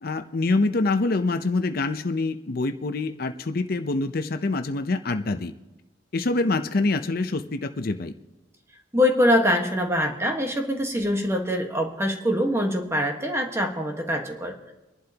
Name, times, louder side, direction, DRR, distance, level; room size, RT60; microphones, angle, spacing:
voice 1, 0.0-5.5 6.1-8.1, left 3 dB, 55° left, 8 dB, 0.6 m, -25 dB
voice 2, 8.9-14.7, left 1 dB, 15° right, 3 dB, 1.3 m, -24 dB
27.5 x 11.5 x 2.9 m, 1.0 s
head